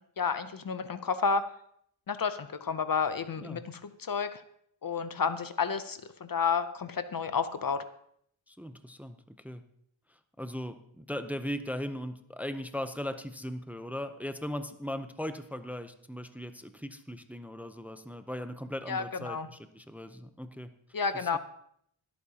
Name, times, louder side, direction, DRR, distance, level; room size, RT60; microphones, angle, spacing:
voice 1, 0.2-1.5 2.1-4.4 4.8-7.8 18.9-19.5 20.9-21.4, left 5 dB, 45° left, 12 dB, 0.6 m, -31 dB
voice 2, 8.5-9.6 10.4-20.7 21.2-21.4, equal, 5° right, 9 dB, 0.6 m, -38 dB
22.5 x 8.5 x 2.8 m, 0.68 s
wide cardioid pair, 105°, 48 cm